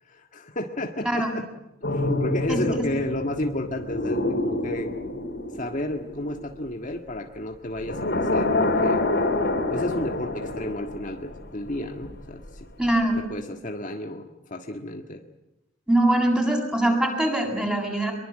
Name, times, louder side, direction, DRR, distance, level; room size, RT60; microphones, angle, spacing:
voice 1, 0.1-1.5 1.9-4.9 5.5-9.0 9.7-12.7 13.3-15.2, left 1 dB, 40° left, 4 dB, 1.7 m, -32 dB
voice 2, 1.0-1.4 2.5-2.9 12.8-13.2 15.9-18.1, right 1 dB, 5° right, 1 dB, 7.8 m, -23 dB
sound 1, 1.8-6.9 7.8-11.8 12.0-12.2, left 2 dB, 55° left, 4.2 m, -27 dB
25.0 x 23.0 x 8.9 m, 0.94 s
head